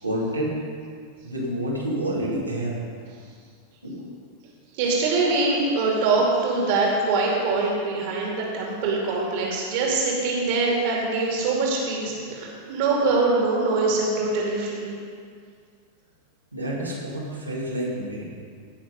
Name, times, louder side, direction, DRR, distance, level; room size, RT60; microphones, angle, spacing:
voice 1, 0.0-0.6 1.2-3.1 3.8-4.1 16.5-18.2, right 1 dB, 85° right, -6 dB, 2.4 m, -29 dB
voice 2, 4.7-14.9, right 3 dB, 50° right, -2 dB, 2.4 m, -23 dB
17.0 x 6.3 x 5.3 m, 2.1 s
figure-of-eight pair, 90°, 0 cm